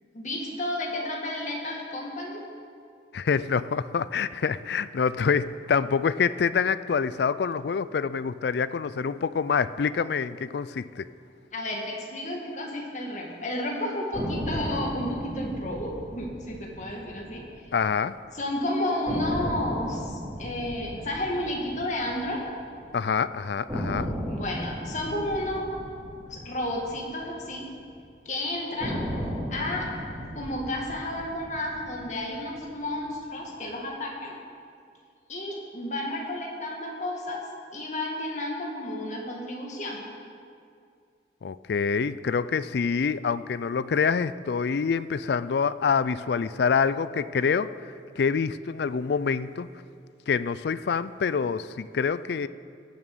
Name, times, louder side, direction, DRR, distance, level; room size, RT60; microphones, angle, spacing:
voice 1, 0.1-2.4 11.5-17.7 18.3-22.4 24.3-25.8 26.3-27.7 28.3-29.0 29.5-29.9 30.3-34.4 35.3-37.4 37.7-40.0, left 1 dB, 40° left, -1 dB, 2.1 m, -32 dB
voice 2, 3.1-11.0 17.7-18.1 22.9-24.1 41.4-47.7 48.2-49.7 50.3-52.5, left 6 dB, 65° left, 16 dB, 0.4 m, -26 dB
sound 1, 14.1-18.2 18.5-18.6 19.1-23.1 23.7-28.0 28.8-33.2, equal, 15° right, 3.0 m, -36 dB
17.0 x 7.2 x 6.8 m, 2.3 s
head